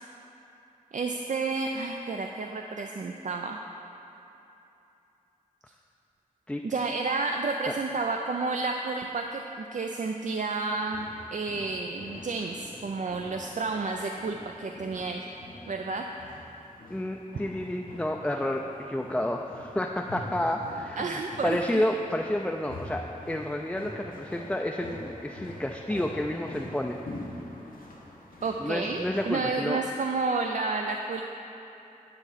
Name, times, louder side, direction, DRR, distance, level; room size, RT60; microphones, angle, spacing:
voice 1, 0.9-3.6 6.6-15.2 15.7-16.0 21.0-21.9 28.4-31.2, right 3 dB, 60° right, 2 dB, 0.4 m, -31 dB
sound 1, 10.7-29.5, left 1 dB, 80° left, 0.9 m, -45 dB
voice 2, 16.9-27.0 28.6-29.8, left 1 dB, 5° left, 2 dB, 0.4 m, -30 dB
9.8 x 5.6 x 4.0 m, 2.9 s
wide cardioid pair, 60°, 14 cm